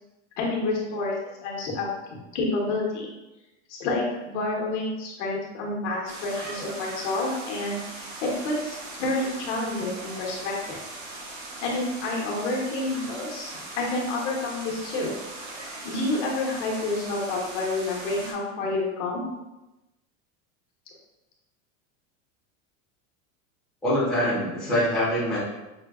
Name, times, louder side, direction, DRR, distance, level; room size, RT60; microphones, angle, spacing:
voice 1, 0.4-1.2 1.4-1.9 2.3-3.1 3.7-10.8 11.6-15.1 15.8-19.2, left 2 dB, 70° left, -2 dB, 1.1 m, -29 dB
sound 1, 6.1-18.3, right 2 dB, 40° right, 0.6 m, -39 dB
voice 2, 23.8-25.4, equal, ahead, -10 dB, 0.7 m, -24 dB
5.9 x 2.2 x 2.4 m, 1.0 s
supercardioid pair, 180°, 37 cm